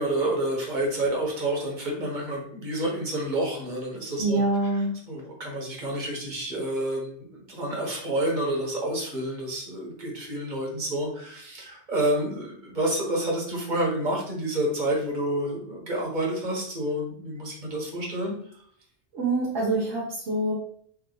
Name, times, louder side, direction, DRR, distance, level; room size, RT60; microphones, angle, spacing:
voice 1, 0.0-4.4 5.1-18.4, right 1 dB, 40° right, -2 dB, 1.2 m, -29 dB
voice 2, 4.2-4.9 19.1-20.5, right 2 dB, 80° right, -6 dB, 1.3 m, -25 dB
3.4 x 2.5 x 3.8 m, 0.62 s
omnidirectional pair, 1.2 m